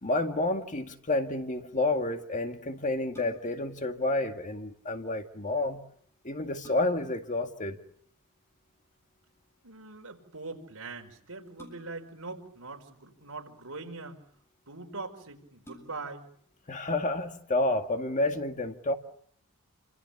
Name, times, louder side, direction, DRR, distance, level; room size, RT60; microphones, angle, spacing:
voice 1, 0.0-5.8 6.2-7.8 16.7-18.9, left 2 dB, 35° left, 2.1 m, -30 dB
sound 1, 3.1-3.7 5.7-5.8 6.3-7.2 8.7-9.1 11.6-12.2 13.1-13.8 14.6-14.7 15.0-15.1 15.6-16.3 16.7-16.8, right 1 dB, 10° left, 7.9 m, -53 dB
voice 2, 9.6-14.2 14.7-16.3, right 3 dB, 70° right, 5.1 m, -42 dB
29.0 x 26.5 x 7.1 m
head